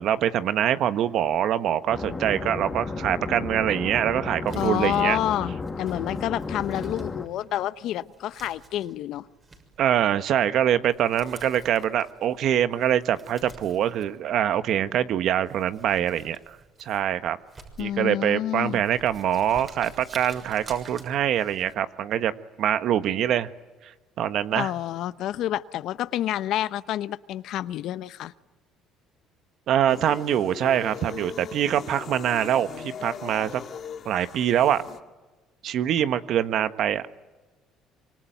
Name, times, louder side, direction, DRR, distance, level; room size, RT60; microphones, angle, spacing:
voice 1, 0.0-5.2 9.8-17.4 17.8-22.3 22.6-23.5 24.2-24.7 29.7-33.6 34.0-34.8 35.6-37.0, right 10 dB, 65° right, 11 dB, 1.4 m, -24 dB
sound 1, 1.9-7.3, left 3 dB, 25° left, 1.9 m, -33 dB
Crumpling crinkling, 4.4-21.7, right 3 dB, 30° right, 6.7 m, -51 dB
voice 2, 4.6-9.3 17.8-18.8 24.5-28.3, left 12 dB, 70° left, 14 dB, 0.9 m, -28 dB
sound 2, 29.9-35.0, left 7 dB, 50° left, 2.2 m, -39 dB
26.0 x 24.5 x 9.3 m, 1.2 s
supercardioid pair, 90°, 0 cm